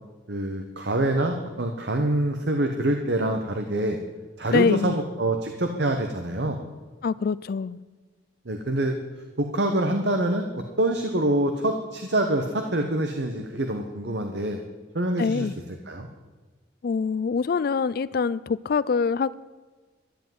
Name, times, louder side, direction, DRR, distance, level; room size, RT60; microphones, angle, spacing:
voice 1, 0.3-4.0 4.4-6.6 8.5-8.9 9.4-10.5 10.8-14.6 14.9-15.5 15.9-16.1, right 1 dB, 60° right, 5 dB, 1.0 m, -25 dB
voice 2, 4.5-5.0 7.0-7.8 15.2-15.5 16.8-19.3, left 5 dB, 50° left, 18 dB, 0.3 m, -24 dB
12.0 x 7.8 x 9.3 m, 1.3 s
head